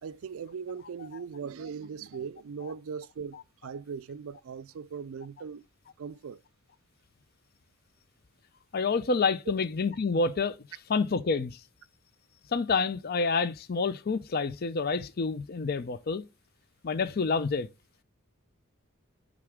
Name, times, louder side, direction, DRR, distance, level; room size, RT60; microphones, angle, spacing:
voice 1, 0.0-5.6 6.0-6.4, right 6 dB, 70° right, 0.4 m, -39 dB
voice 2, 8.7-10.6 10.9-11.6 12.5-16.2 16.8-17.7, left 4 dB, 45° left, 0.5 m, -28 dB
9.7 x 3.5 x 3.5 m
head